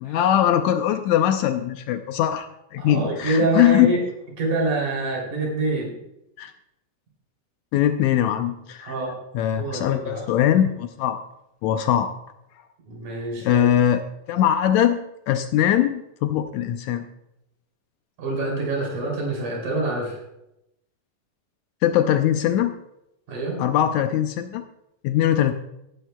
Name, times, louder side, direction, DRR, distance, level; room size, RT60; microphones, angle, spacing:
voice 1, 0.0-2.5 2.7-3.9 6.4-6.5 7.7-9.0 9.3-11.2 11.6-12.1 13.4-14.0 14.3-15.0 15.3-17.1 21.8-22.7 23.6-24.6 25.0-25.5, left 11 dB, 80° left, 7 dB, 1.7 m, -21 dB
voice 2, 2.8-4.0 4.4-6.0 8.8-9.1 9.6-10.2 12.9-13.7 18.2-20.2 23.3-23.6, right 2 dB, 70° right, -1 dB, 4.5 m, -26 dB
17.5 x 10.5 x 2.2 m, 0.85 s
omnidirectional pair, 3.7 m